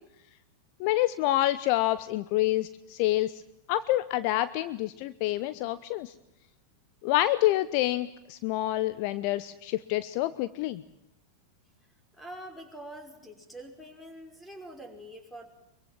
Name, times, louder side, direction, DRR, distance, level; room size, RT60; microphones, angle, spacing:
voice 1, 0.8-3.4 3.7-6.1 7.0-10.8, left 15 dB, 45° left, 14 dB, 0.9 m, -27 dB
voice 2, 12.1-15.5, right 1 dB, 5° left, 5 dB, 5.6 m, -45 dB
25.0 x 23.5 x 7.6 m, 0.81 s
figure-of-eight pair, 90°, 0 cm